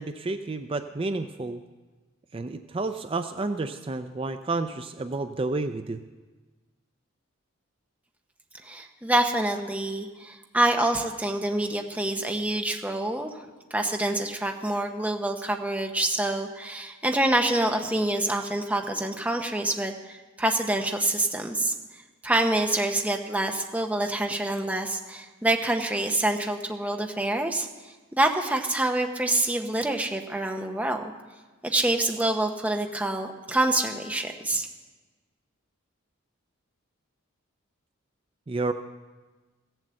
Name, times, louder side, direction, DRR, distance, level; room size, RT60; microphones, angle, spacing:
voice 1, 0.0-1.6 2.3-6.0 38.5-38.7, right 3 dB, 25° right, 9 dB, 0.4 m, -30 dB
voice 2, 8.6-13.4 13.7-21.7 22.2-27.7 28.1-31.1 31.6-34.7, right 1 dB, 5° right, 3 dB, 0.8 m, -26 dB
16.0 x 7.6 x 7.6 m, 1.3 s
head